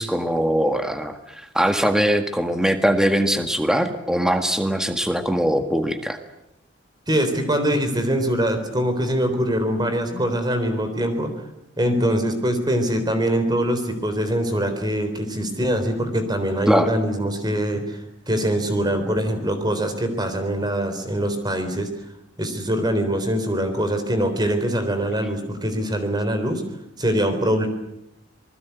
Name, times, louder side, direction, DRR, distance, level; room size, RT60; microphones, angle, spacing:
voice 1, 0.0-6.2 16.7-16.9, equal, 5° right, 7 dB, 1.7 m, -21 dB
voice 2, 7.1-11.3 11.8-21.9 22.4-26.6 27.0-27.7, equal, 20° right, 7 dB, 3.8 m, -23 dB
27.0 x 20.5 x 8.3 m, 0.86 s
head